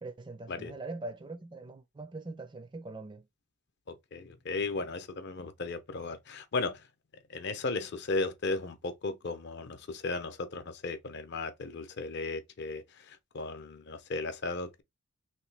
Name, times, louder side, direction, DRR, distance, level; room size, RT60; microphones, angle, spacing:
voice 1, 0.0-3.3, right 2 dB, 25° right, 0.4 m, -42 dB
voice 2, 3.9-6.9 7.3-14.8, left 3 dB, 55° left, 0.5 m, -36 dB
3.0 x 2.6 x 3.2 m
head